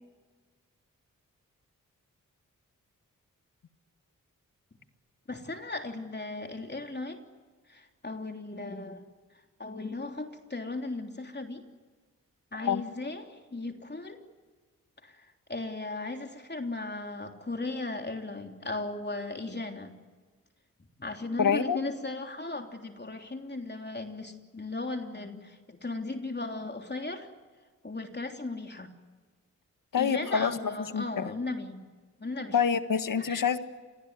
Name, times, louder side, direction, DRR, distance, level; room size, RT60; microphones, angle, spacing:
voice 1, 5.3-7.2 7.7-9.0 9.6-11.6 12.5-14.2 15.0-19.9 21.0-27.3 27.8-28.9 29.9-31.8 32.2-32.6 33.2-33.4, left 2 dB, 30° left, 4 dB, 3.2 m, -36 dB
voice 2, 21.4-21.8 29.9-30.5 30.9-31.3 32.5-33.6, left 7 dB, 70° left, 10 dB, 1.7 m, -26 dB
27.0 x 20.5 x 9.6 m, 1.4 s
cardioid pair, 45°, 33 cm